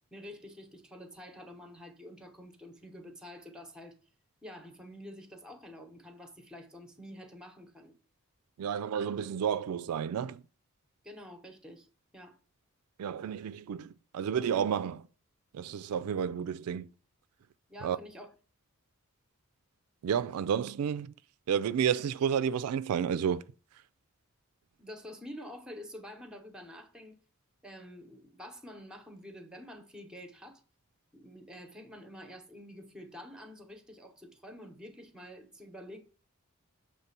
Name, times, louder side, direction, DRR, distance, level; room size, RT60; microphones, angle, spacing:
voice 1, 0.1-4.0 4.4-8.0 11.0-11.9 12.1-12.4 17.7-18.3 24.8-27.2 27.6-30.6 31.1-36.0, left 1 dB, 5° right, 0.9 m, -48 dB
voice 2, 8.6-10.4 13.0-15.1 15.5-16.9 17.8-18.0 20.0-21.1 21.5-23.4, right 8 dB, 75° right, 0.3 m, -31 dB
6.7 x 3.2 x 5.8 m
head